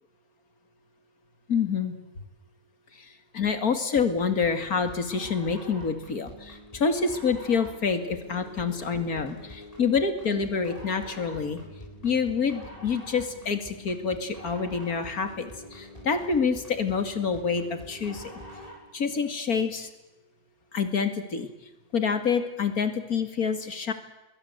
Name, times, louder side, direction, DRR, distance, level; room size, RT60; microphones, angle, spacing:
voice 1, 1.5-1.9 3.3-11.6 12.0-18.2 18.9-19.9 20.7-21.5 21.9-23.9, left 5 dB, 85° left, 8 dB, 2.7 m, -27 dB
sound 1, 4.0-18.9, left 1 dB, 25° left, 7.9 m, -45 dB
27.0 x 22.0 x 8.0 m, 1.0 s
omnidirectional pair, 1.5 m